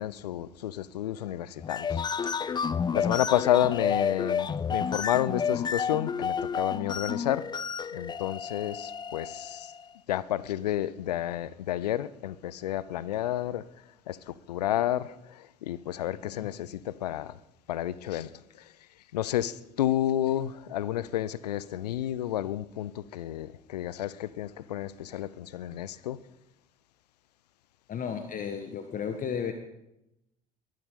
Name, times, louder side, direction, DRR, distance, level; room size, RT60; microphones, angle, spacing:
voice 1, 0.0-2.0 2.9-7.4 7.9-9.7 10.1-13.6 14.1-17.4 17.7-18.3 19.1-26.2, left 12 dB, 75° left, 20 dB, 0.7 m, -30 dB
sound 1, 1.6-9.8, left 6 dB, 20° left, 0.5 m, -31 dB
voice 2, 27.9-29.5, left 7 dB, 40° left, 7 dB, 1.5 m, -34 dB
22.5 x 11.5 x 5.3 m, 0.89 s
figure-of-eight pair, 60°, 21 cm